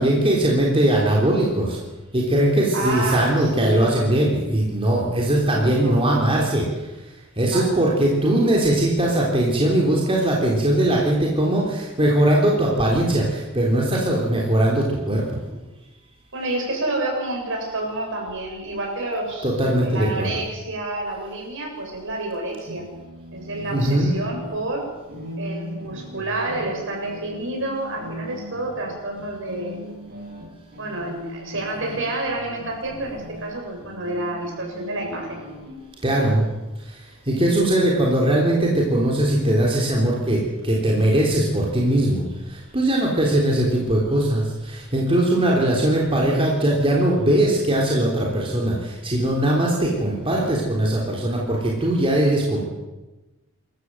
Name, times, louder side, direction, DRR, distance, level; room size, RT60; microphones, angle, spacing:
voice 1, 0.0-1.8 2.1-15.6 19.4-20.3 23.7-24.1 36.0-36.5 36.8-52.6, right 1 dB, 25° right, -2 dB, 3.6 m, -20 dB
voice 2, 2.7-3.9 5.6-6.0 7.4-7.7 16.3-19.5 19.8-22.8 23.3-24.8 25.4-29.8 30.8-35.4 45.3-45.4, right 2 dB, 60° right, 0 dB, 8.0 m, -29 dB
sound 1, 22.4-35.8, equal, 45° right, 5.5 m, -39 dB
27.5 x 14.5 x 7.8 m, 1.1 s
head